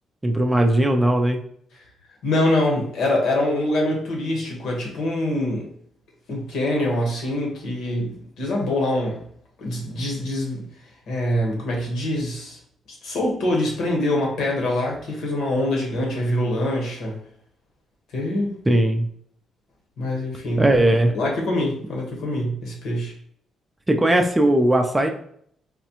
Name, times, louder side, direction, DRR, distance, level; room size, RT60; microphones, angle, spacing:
voice 1, 0.2-1.4 18.7-19.1 20.6-21.1 23.9-25.1, right 1 dB, 15° right, 3 dB, 0.4 m, -18 dB
voice 2, 2.2-5.7 6.3-9.2 9.6-10.6 11.1-12.6 12.9-17.2 18.1-18.5 20.0-20.6 21.1-23.1, left 1 dB, 75° left, 0 dB, 1.2 m, -24 dB
4.1 x 2.3 x 2.9 m, 0.65 s
cardioid pair, 90°, 0 cm